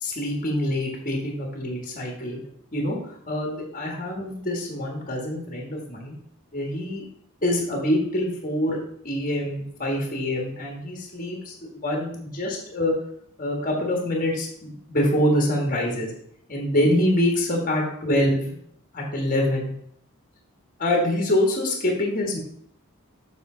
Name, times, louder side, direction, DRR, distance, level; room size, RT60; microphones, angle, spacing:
voice 1, 0.0-2.4 2.7-6.1 6.5-7.0 7.4-8.8 9.0-12.9 13.4-16.1 16.5-18.5 18.9-19.7 20.8-22.4, left 1 dB, 35° left, 0 dB, 1.6 m, -25 dB
7.1 x 6.5 x 3.9 m, 0.66 s
head